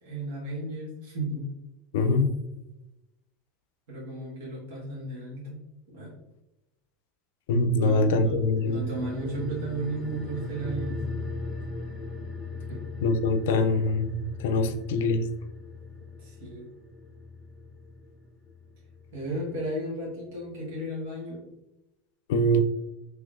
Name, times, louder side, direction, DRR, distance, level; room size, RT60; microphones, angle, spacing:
voice 1, 0.0-1.5 3.9-5.6 5.9-6.1 7.8-11.0 12.7-12.8 16.2-16.7 19.1-21.4, right 1 dB, 70° right, -5 dB, 1.3 m, -34 dB
voice 2, 1.9-2.4 7.5-8.8 13.0-15.3 22.3-22.6, left 2 dB, 75° left, 8 dB, 0.4 m, -24 dB
sound 1, 8.6-19.4 19.7-19.8, left 2 dB, 15° left, 0.4 m, -39 dB
3.7 x 3.0 x 2.4 m, 0.96 s
supercardioid pair, 180°, 0 cm